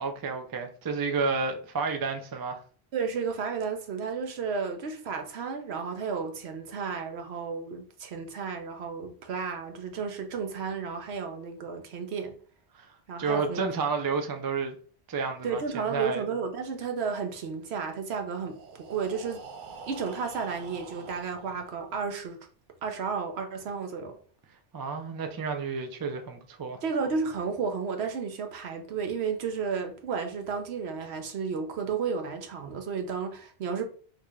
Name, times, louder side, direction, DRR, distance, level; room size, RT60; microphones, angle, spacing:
voice 1, 0.0-2.6 12.7-12.9 13.2-14.8 15.1-16.2 24.7-26.8, right 4 dB, 35° right, 0.3 m, -31 dB
voice 2, 2.9-12.3 13.1-13.6 15.4-18.6 18.9-19.4 19.9-22.4 22.8-24.2 26.8-33.8, right 5 dB, 80° right, 1.0 m, -32 dB
Breathing, 18.3-22.2, right 4 dB, 60° right, 0.7 m, -46 dB
4.7 x 2.8 x 2.3 m
omnidirectional pair, 1.1 m